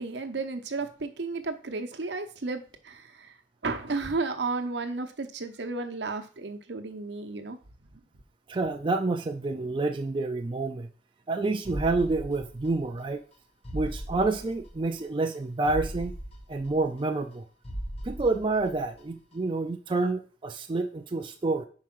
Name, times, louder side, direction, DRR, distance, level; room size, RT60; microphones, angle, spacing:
voice 1, 0.0-3.4 3.6-7.6 7.9-8.0, right 3 dB, 70° right, 0.8 m, -33 dB
voice 2, 8.5-10.9 11.3-13.2 13.7-16.1 16.5-17.4 18.0-21.6, right 3 dB, 25° right, 0.4 m, -28 dB
sound 1, 11.6-13.0 13.3-13.4 13.6-15.0 15.3-15.4 15.6-17.4 17.6-19.0 19.3-19.4, equal, 35° left, 0.9 m, -38 dB
4.9 x 4.6 x 5.9 m
head